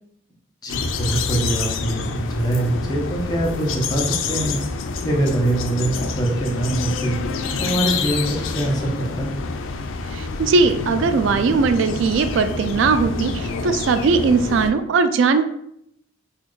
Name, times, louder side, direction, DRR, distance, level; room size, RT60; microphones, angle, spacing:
voice 1, 0.6-4.6 5.0-7.2 7.6-9.3, right 1 dB, 20° left, -3 dB, 0.7 m, -23 dB
sound 1, 0.7-14.7, left 4 dB, 85° left, 0.4 m, -27 dB
voice 2, 10.1-15.4, right 4 dB, 75° right, 10 dB, 0.3 m, -19 dB
4.1 x 2.4 x 3.1 m, 0.72 s
head